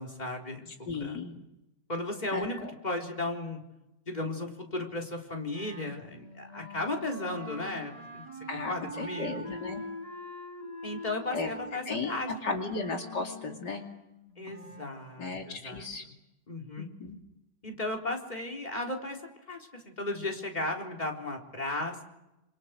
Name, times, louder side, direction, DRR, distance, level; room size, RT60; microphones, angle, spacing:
voice 1, 0.0-0.7 1.0-1.2 1.9-3.6 4.1-8.2 8.7-9.4 10.8-12.6 14.4-15.9 16.5-16.9 17.6-19.2 19.5-22.0, left 2 dB, 25° left, 1 dB, 4.1 m, -35 dB
voice 2, 0.9-1.5 2.3-2.7 8.5-9.8 11.3-11.5 11.9-13.8 15.2-16.0 16.8-17.2, left 3 dB, 75° left, 2 dB, 3.2 m, -35 dB
Wind instrument woodwind instrument, 5.5-15.0, equal, 15° right, 7.7 m, -44 dB
28.5 x 28.0 x 6.5 m, 0.92 s
omnidirectional pair, 1.8 m